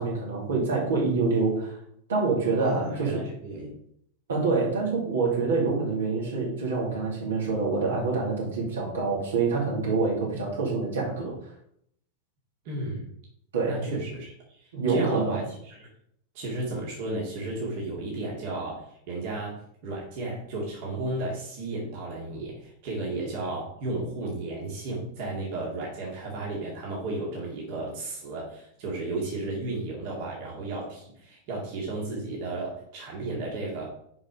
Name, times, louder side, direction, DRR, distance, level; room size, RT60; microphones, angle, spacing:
voice 1, 0.0-1.8 2.1-3.2 4.3-11.4 13.5-14.0 14.7-15.4, right 4 dB, 65° right, -2 dB, 2.6 m, -26 dB
voice 2, 2.6-3.7 12.6-13.1 13.7-15.9 16.3-33.8, right 2 dB, 50° right, -3 dB, 2.2 m, -34 dB
7.2 x 5.3 x 5.1 m, 0.71 s
figure-of-eight pair, 90°, 0 cm